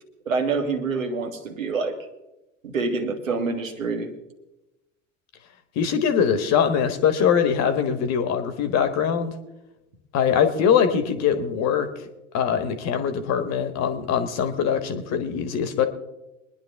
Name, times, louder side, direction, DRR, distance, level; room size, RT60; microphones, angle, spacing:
voice 1, 0.3-2.0 2.6-4.1, right 4 dB, 80° right, 4 dB, 1.7 m, -26 dB
voice 2, 5.7-9.3 10.1-11.9 12.3-15.9, left 7 dB, 40° left, 9 dB, 1.5 m, -22 dB
23.0 x 10.5 x 3.5 m, 0.96 s
figure-of-eight pair, 80°, 39 cm